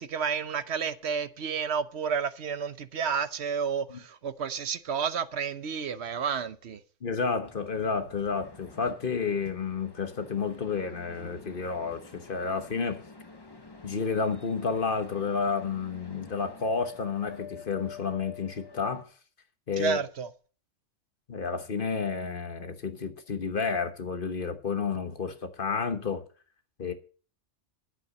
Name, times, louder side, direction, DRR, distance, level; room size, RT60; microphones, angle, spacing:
voice 1, 0.0-6.8 19.8-20.3, right 6 dB, 65° right, 1.0 m, -31 dB
voice 2, 7.0-13.0 13.8-19.1 19.7-20.0 21.3-26.2 26.8-26.9, left 5 dB, 50° left, 1.2 m, -31 dB
sound 1, 7.4-19.0, left 4 dB, 20° left, 1.1 m, -48 dB
11.5 x 7.9 x 6.5 m
omnidirectional pair, 1.2 m